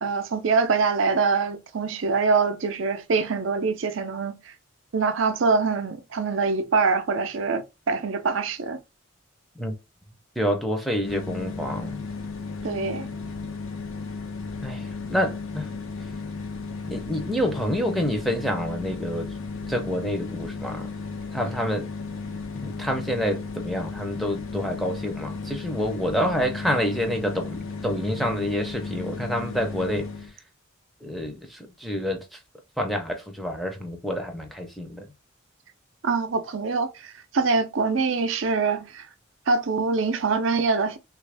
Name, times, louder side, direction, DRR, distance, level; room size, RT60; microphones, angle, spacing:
voice 1, 0.0-4.5 4.9-8.8 12.6-13.1 36.0-39.1 39.5-41.0, right 4 dB, 75° right, 0.5 m, -24 dB
voice 2, 10.4-12.1 14.6-15.7 16.9-19.3 19.7-20.9 21.3-21.9 22.5-30.1 31.0-32.4 32.8-35.1, equal, ahead, 0.5 m, -28 dB
sound 1, 11.0-30.3, left 4 dB, 90° left, 0.6 m, -35 dB
3.3 x 2.4 x 3.3 m
head